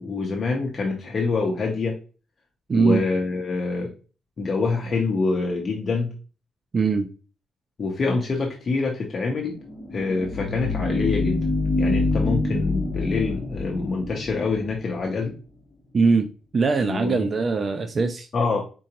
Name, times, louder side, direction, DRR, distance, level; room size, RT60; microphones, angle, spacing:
voice 1, 0.0-1.9 2.7-3.9 4.4-6.1 7.8-9.6 9.9-11.4 11.8-15.3 16.8-17.3 18.3-18.6, left 3 dB, 35° left, 0 dB, 0.8 m, -25 dB
voice 2, 2.7-3.0 6.7-7.1 15.9-16.3 16.5-18.3, right 4 dB, 30° right, 7 dB, 0.4 m, -21 dB
sound 1, 9.6-15.1, left 2 dB, 15° left, 1.1 m, -26 dB
4.8 x 3.8 x 2.9 m, 0.35 s
cardioid pair, 170°, 0 cm